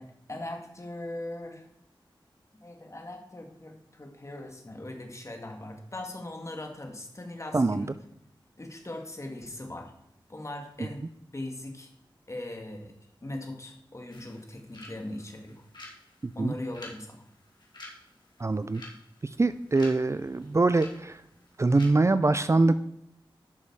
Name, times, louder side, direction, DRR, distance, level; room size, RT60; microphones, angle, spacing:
voice 1, 0.0-1.7 2.6-7.9 8.6-9.9 10.3-11.0 11.3-11.9 12.3-12.9 13.2-15.6 16.3-17.2, left 1 dB, 35° left, 3 dB, 2.1 m, -40 dB
voice 2, 7.5-7.9 16.4-16.5 18.4-18.8 19.4-21.2 21.6-22.8, right 3 dB, 35° right, 13 dB, 0.4 m, -23 dB
sound 1, 14.1-21.9, left 2 dB, 55° left, 2.9 m, -51 dB
11.0 x 6.5 x 4.7 m, 0.78 s
wide cardioid pair, 70°, 9 cm